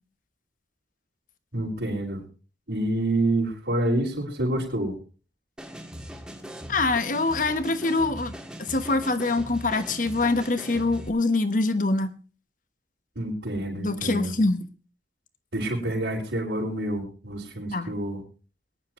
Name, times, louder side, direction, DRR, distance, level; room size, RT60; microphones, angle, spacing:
voice 1, 1.5-2.2 2.7-4.9 13.1-14.3 15.5-18.2, right 1 dB, 80° right, -7 dB, 4.8 m, -27 dB
sound 1, 5.6-11.1, equal, 5° right, 1.9 m, -40 dB
voice 2, 6.7-8.3 8.6-12.1 13.7-14.7 17.7-17.9, left 2 dB, 45° left, 11 dB, 1.2 m, -24 dB
22.5 x 10.5 x 3.1 m, 0.37 s
head